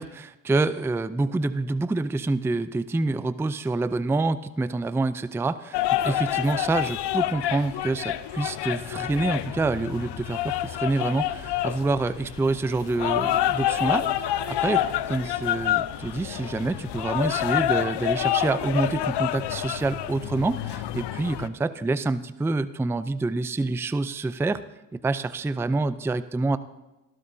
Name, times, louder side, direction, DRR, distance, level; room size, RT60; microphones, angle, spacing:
voice 1, 0.0-24.6 24.9-26.6, right 3 dB, 5° right, 13 dB, 0.4 m, -27 dB
sound 1, 5.7-21.5, left 12 dB, 55° left, 0.8 m, -28 dB
19.0 x 12.5 x 2.7 m, 1.0 s
supercardioid pair, 65°, 49 cm